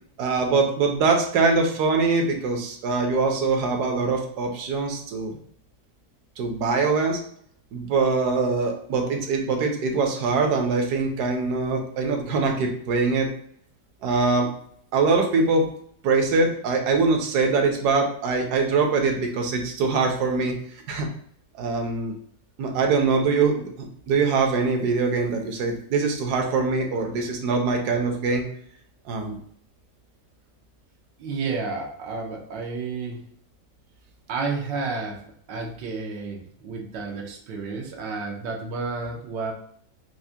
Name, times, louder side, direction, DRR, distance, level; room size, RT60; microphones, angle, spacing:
voice 1, 0.2-5.3 6.4-7.2 7.7-13.3 14.0-14.5 14.9-15.7 16.0-20.5 20.9-21.1 21.5-22.1 22.6-28.5 29.1-29.4, right 4 dB, 70° right, 3 dB, 1.1 m, -23 dB
voice 2, 31.2-33.2 34.3-35.2 35.5-39.5, right 4 dB, 85° right, 1 dB, 1.4 m, -31 dB
4.7 x 2.1 x 2.7 m, 0.65 s
omnidirectional pair, 1.9 m